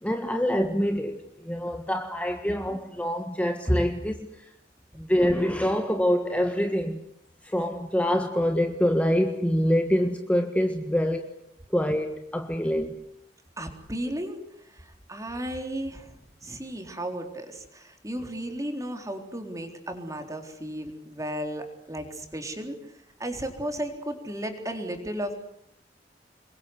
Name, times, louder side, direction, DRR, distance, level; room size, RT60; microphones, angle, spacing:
voice 1, 0.0-4.3 4.9-7.0 7.4-11.3 11.7-13.0, equal, 10° left, 1.6 m, -25 dB
voice 2, 13.6-14.4 14.6-16.1 16.4-22.8 23.2-25.4, right 1 dB, 20° right, 3.9 m, -34 dB
27.0 x 22.5 x 8.1 m
head